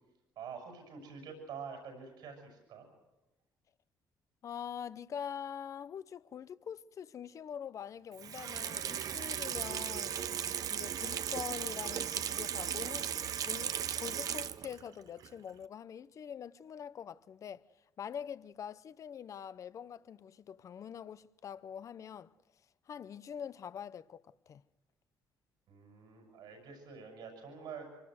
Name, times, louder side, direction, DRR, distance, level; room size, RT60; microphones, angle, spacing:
voice 1, 0.3-2.9 25.7-27.8, right 6 dB, 75° right, 6.7 m, -47 dB
voice 2, 4.4-10.2 10.7-17.6 18.0-22.3 22.9-24.6, left 8 dB, 50° left, 0.7 m, -44 dB
Water tap faucet / Sink (filling or washing), 8.1-14.9 15.2-15.3, right 9 dB, 55° right, 0.8 m, -36 dB
25.5 x 18.5 x 7.9 m
cardioid pair, 115°, 7 cm